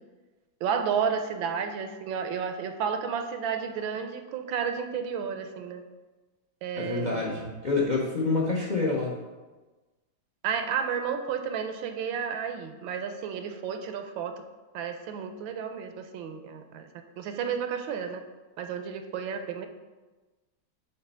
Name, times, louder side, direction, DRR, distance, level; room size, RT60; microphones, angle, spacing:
voice 1, 0.6-5.8 6.6-7.4 10.4-14.3 14.7-16.9 17.2-18.2 18.6-19.7, right 7 dB, 80° right, 7 dB, 1.4 m, -32 dB
voice 2, 6.8-9.2, left 3 dB, 50° left, -2 dB, 0.5 m, -27 dB
8.2 x 3.3 x 5.4 m, 1.2 s
omnidirectional pair, 2.2 m